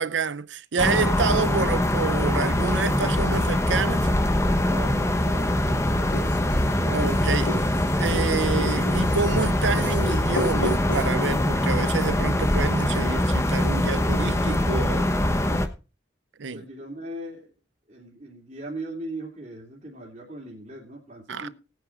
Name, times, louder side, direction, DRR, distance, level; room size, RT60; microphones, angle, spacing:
voice 1, 0.0-4.1 6.8-7.6 7.9-15.5 16.4-16.6 21.3-21.5, right 5 dB, 80° right, 0.7 m, -28 dB
sound 1, 0.8-15.7, left 1 dB, 15° left, 1.0 m, -23 dB
voice 2, 4.4-7.6 16.5-17.5 17.9-21.5, right 1 dB, 40° right, 3.0 m, -40 dB
Writing, 5.5-11.1, equal, 85° left, 5.1 m, -32 dB
19.5 x 9.2 x 2.5 m
head